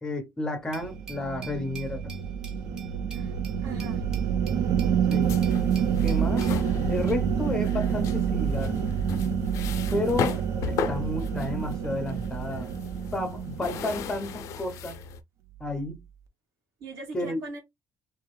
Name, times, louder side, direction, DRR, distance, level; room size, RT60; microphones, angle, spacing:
voice 1, 0.0-2.2 5.1-5.4 6.0-6.5 6.9-8.8 9.9-10.4 10.7-12.7 13.1-15.0 15.6-16.0 17.1-17.4, left 2 dB, 15° left, 0.9 m, -31 dB
Glass, 0.7-6.6, right 5 dB, 15° right, 2.0 m, -47 dB
sound 1, 0.8-14.3, right 8 dB, 65° right, 0.7 m, -28 dB
voice 2, 3.6-4.0 9.9-10.0 16.8-17.6, right 2 dB, 85° right, 2.3 m, -41 dB
sound 2, 5.2-15.2, left 6 dB, 70° left, 0.6 m, -36 dB
3.6 x 2.9 x 3.2 m
cardioid pair, 180°, 6 cm